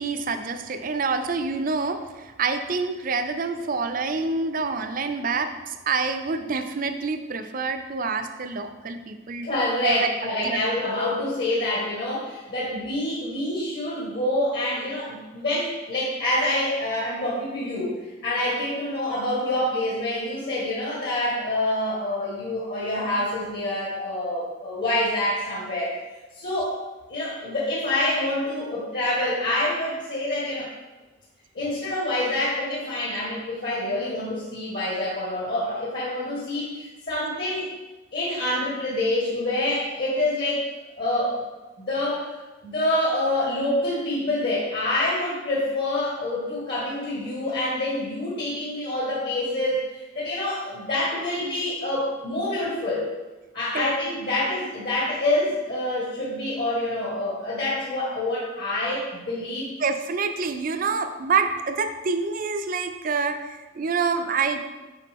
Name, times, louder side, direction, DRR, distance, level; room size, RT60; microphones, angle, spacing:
voice 1, 0.0-9.5 9.8-10.1 10.4-10.6 53.7-53.9 59.8-64.6, right 4 dB, 45° right, 9 dB, 0.5 m, -27 dB
voice 2, 9.4-26.0 26.4-26.7 27.1-30.7 31.5-37.7 38.1-40.7 41.0-41.4 41.8-42.3 42.6-53.1 53.5-59.7, left 1 dB, 55° left, -6 dB, 1.6 m, -26 dB
8.2 x 4.8 x 3.6 m, 1.2 s
head